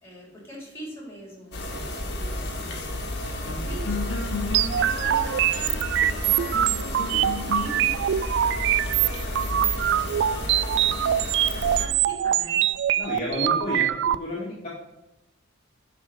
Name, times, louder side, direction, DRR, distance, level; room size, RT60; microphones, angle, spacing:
voice 1, 0.0-2.9 3.4-7.9 8.4-12.7, equal, 15° left, -3 dB, 3.6 m, -43 dB
sound 1, 1.5-11.9, left 1 dB, 60° left, 1.6 m, -32 dB
sound 2, 2.3-11.9, left 3 dB, 90° left, 1.3 m, -37 dB
sound 3, 4.5-14.2, right 11 dB, 60° right, 0.3 m, -24 dB
voice 2, 13.0-13.9 14.2-14.7, left 1 dB, 35° left, -7 dB, 2.0 m, -30 dB
9.7 x 4.2 x 6.0 m, 0.95 s
head